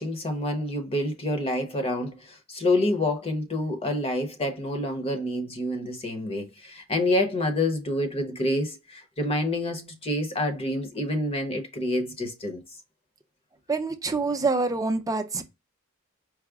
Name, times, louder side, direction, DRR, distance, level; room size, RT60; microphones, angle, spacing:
voice 1, 0.0-12.6, left 1 dB, 25° left, 0.9 m, -28 dB
voice 2, 13.7-15.4, right 3 dB, 15° right, 0.5 m, -26 dB
4.8 x 2.1 x 3.5 m
head